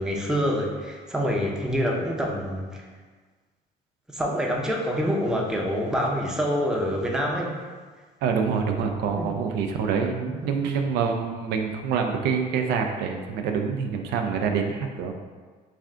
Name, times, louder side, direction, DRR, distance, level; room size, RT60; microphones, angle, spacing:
voice 1, 0.0-2.8 4.1-7.6 9.1-9.3 10.3-10.5, equal, 5° right, -2 dB, 0.5 m, -26 dB
voice 2, 8.2-15.1, right 6 dB, 85° right, 4 dB, 0.4 m, -26 dB
3.2 x 2.4 x 3.6 m, 1.4 s
cardioid pair, 110°, 17 cm